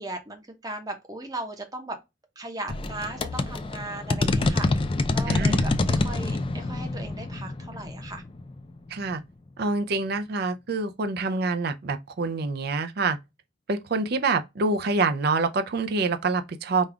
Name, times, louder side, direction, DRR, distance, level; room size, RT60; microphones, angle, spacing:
voice 1, 0.0-2.0 2.4-8.2, right 2 dB, 20° right, 0.8 m, -37 dB
sound 1, 2.7-9.1, left 2 dB, 30° left, 0.4 m, -26 dB
voice 2, 5.3-5.7 8.9-9.2 9.6-13.2 13.7-16.9, right 3 dB, 55° right, 0.5 m, -26 dB
5.3 x 2.4 x 3.3 m
head